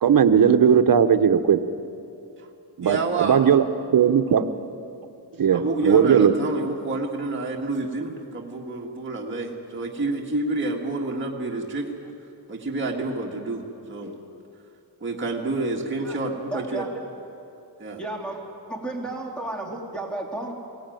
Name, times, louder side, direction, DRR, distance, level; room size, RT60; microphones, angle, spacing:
voice 1, 0.0-1.6 2.8-3.6 3.9-4.5 5.4-6.3, right 8 dB, 55° right, 8 dB, 1.0 m, -18 dB
voice 2, 2.8-3.5 5.5-12.1 12.5-14.1 15.0-16.9 17.8-18.0, right 2 dB, 30° right, -1 dB, 1.8 m, -28 dB
voice 3, 16.5-17.0 18.0-18.4 18.7-20.5, right 2 dB, ahead, 0 dB, 3.0 m, -32 dB
22.5 x 17.0 x 9.2 m, 2.7 s
wide cardioid pair, 145°, 41 cm